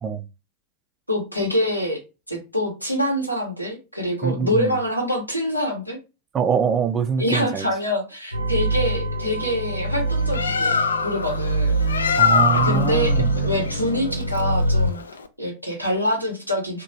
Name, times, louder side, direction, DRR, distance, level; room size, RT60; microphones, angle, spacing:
voice 1, 1.1-2.0 2.3-6.0 7.2-11.7 12.6-15.0 15.4-16.8, equal, 90° left, 1.0 m, -25 dB
voice 2, 4.2-4.7 6.3-7.7 12.2-13.3, right 6 dB, 25° right, 0.3 m, -23 dB
sound 1, 8.3-14.9, right 1 dB, 90° right, 0.6 m, -24 dB
Bird, 10.1-15.3, left 5 dB, 70° left, 0.3 m, -24 dB
2.9 x 2.2 x 2.7 m
figure-of-eight pair, 90°, 0 cm